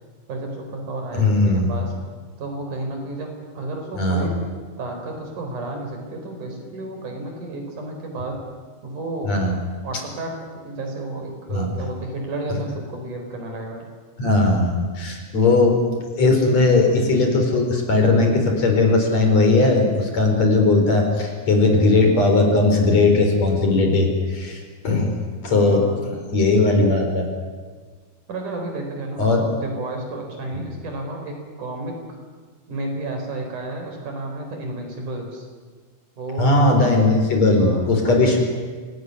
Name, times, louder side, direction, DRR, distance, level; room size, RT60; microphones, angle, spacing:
voice 1, 0.3-1.9 2.4-4.4 4.8-8.4 8.8-9.3 9.8-13.9 25.5-26.1 28.3-32.0 32.7-35.5 36.2-36.5 37.6-38.4, right 2 dB, 75° right, 3 dB, 6.0 m, -32 dB
voice 2, 1.2-1.7 4.0-4.3 9.3-9.5 11.5-11.7 14.2-25.2 25.4-27.3 29.2-29.4 36.4-38.4, left 2 dB, 55° left, 3 dB, 5.4 m, -18 dB
26.5 x 18.5 x 9.7 m, 1.5 s
omnidirectional pair, 3.6 m